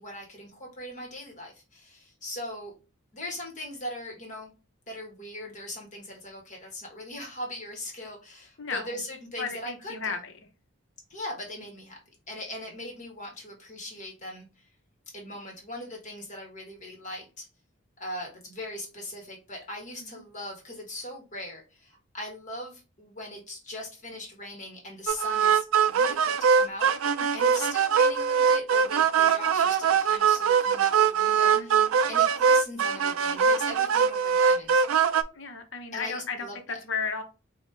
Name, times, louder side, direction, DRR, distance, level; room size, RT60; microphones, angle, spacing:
voice 1, 0.0-2.7 3.1-4.5 4.9-10.1 11.1-12.0 12.3-14.7 15.1-17.5 18.0-34.8 35.9-36.8, left 1 dB, 35° left, 1.4 m, -40 dB
voice 2, 8.6-9.0 9.4-10.3 20.0-20.2 31.5-31.9 35.3-37.2, left 5 dB, 65° left, 0.8 m, -34 dB
sound 1, 25.1-35.2, right 7 dB, 85° right, 0.4 m, -22 dB
5.2 x 2.3 x 3.2 m
head